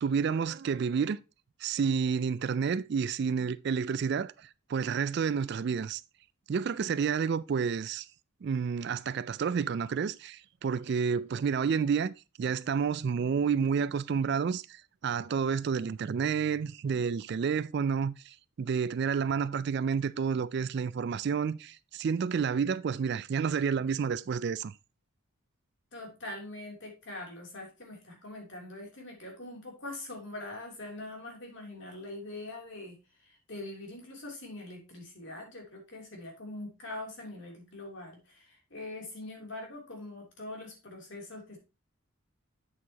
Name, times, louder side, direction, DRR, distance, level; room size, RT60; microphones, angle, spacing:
voice 1, 0.0-1.2 1.6-6.0 6.5-8.1 8.4-24.7, right 6 dB, 50° right, 0.3 m, -30 dB
voice 2, 25.9-41.6, left 2 dB, 60° left, 3.0 m, -43 dB
8.2 x 7.3 x 2.8 m
head